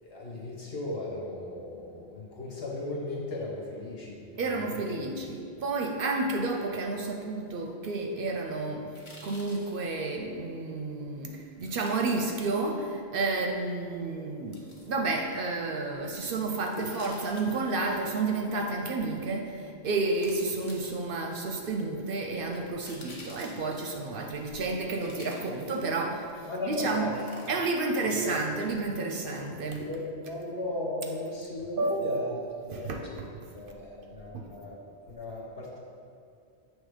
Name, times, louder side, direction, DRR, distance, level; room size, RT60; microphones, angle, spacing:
voice 1, 0.0-5.1 16.7-16.9 26.4-27.1 28.2-28.4 29.8-34.8 35.1-35.8, left 2 dB, 65° left, -4 dB, 1.4 m, -37 dB
voice 2, 4.4-8.9 9.2-27.1 27.5-29.9 31.8-32.1 32.7-33.0 34.3-34.5, right 3 dB, 60° right, 2 dB, 0.7 m, -31 dB
sound 1, 8.9-9.8 11.6-12.2 14.5-14.9 16.7-17.8 19.4-19.5 20.1-21.3 22.5-24.0 24.9-26.0 27.1-27.8 28.2-28.3, left 1 dB, 30° left, 0.9 m, -50 dB
7.2 x 3.2 x 4.9 m, 2.4 s
omnidirectional pair, 1.1 m